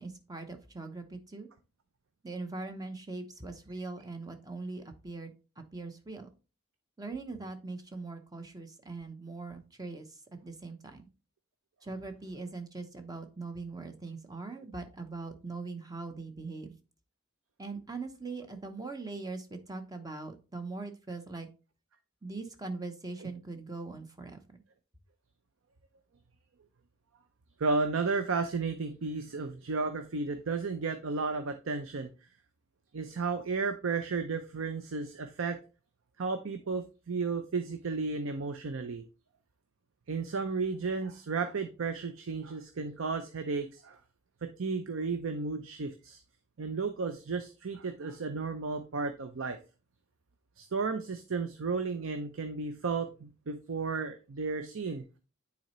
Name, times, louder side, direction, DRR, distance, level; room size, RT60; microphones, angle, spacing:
voice 1, 0.0-1.5 2.2-6.3 7.0-10.1 10.4-11.0 11.8-16.8 17.6-21.5 22.2-24.4, right 3 dB, 20° right, 6 dB, 0.7 m, -41 dB
voice 2, 27.6-32.1 32.9-35.6 36.2-39.0 40.1-44.0 44.4-46.2 46.6-49.6 50.6-55.0, right 4 dB, 70° right, 8 dB, 0.6 m, -33 dB
9.1 x 4.1 x 3.1 m, 0.33 s
head